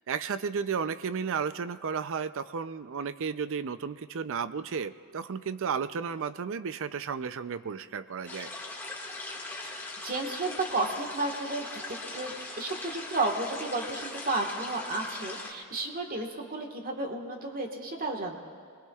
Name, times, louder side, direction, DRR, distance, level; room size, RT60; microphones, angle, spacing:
voice 1, 0.1-8.5, right 6 dB, 60° right, 13 dB, 0.5 m, -33 dB
sound 1, 8.3-15.5, left 2 dB, 10° left, 1.8 m, -40 dB
voice 2, 10.0-11.7 12.1-18.4, right 2 dB, 40° right, 2 dB, 1.5 m, -32 dB
27.5 x 21.5 x 2.4 m, 2.2 s
head